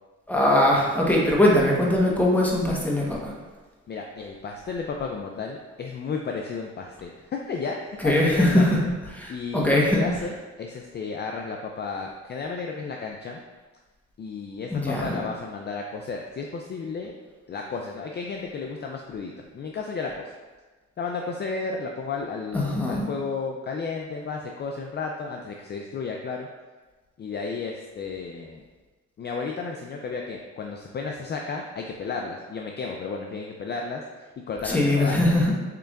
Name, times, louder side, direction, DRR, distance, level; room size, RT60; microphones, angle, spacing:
voice 1, 0.3-3.3 8.0-8.8 9.1-10.0 14.7-15.2 22.5-23.1 34.6-35.5, left 1 dB, 5° left, -3 dB, 1.1 m, -21 dB
voice 2, 3.9-8.8 9.3-13.4 14.2-17.1 17.5-20.2 21.0-26.5 27.2-28.6 29.2-34.0 34.5-35.2, left 4 dB, 35° left, 1 dB, 0.4 m, -33 dB
6.7 x 3.3 x 2.4 m, 1.3 s
cardioid pair, 90°, 30 cm